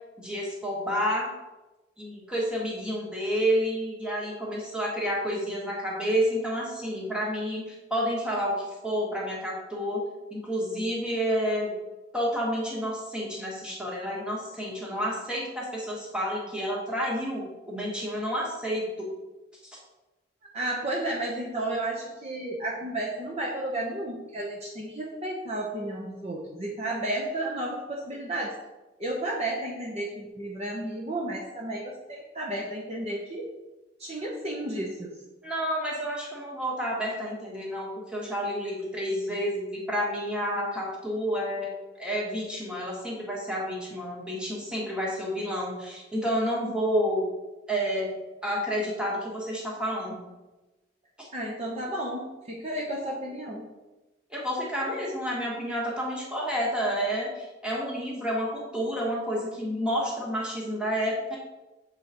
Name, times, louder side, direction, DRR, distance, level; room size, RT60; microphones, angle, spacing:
voice 1, 0.2-1.3 2.0-10.0 10.3-11.7 12.1-19.1 35.4-41.7 42.0-47.3 47.7-48.2 48.4-50.3 51.2-51.3 54.3-61.4, equal, 5° right, -4 dB, 1.5 m, -30 dB
voice 2, 20.5-28.6 29.0-33.4 34.0-35.1 51.3-53.6, right 1 dB, 35° right, -3 dB, 0.8 m, -32 dB
7.5 x 4.0 x 4.3 m, 1.1 s
head